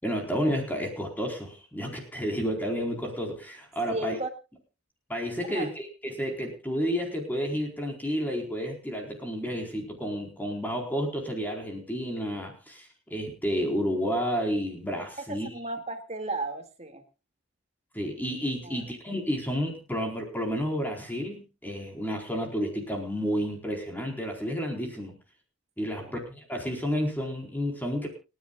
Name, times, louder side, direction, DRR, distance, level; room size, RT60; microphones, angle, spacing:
voice 1, 0.0-4.2 5.1-15.6 17.9-25.2 25.8-28.1, equal, 10° left, 2 dB, 4.3 m, -31 dB
voice 2, 3.9-4.3 5.4-5.7 15.3-17.0 18.6-18.8 25.9-26.2, right 2 dB, 30° right, 6 dB, 2.3 m, -35 dB
29.5 x 10.5 x 2.4 m, 0.30 s
head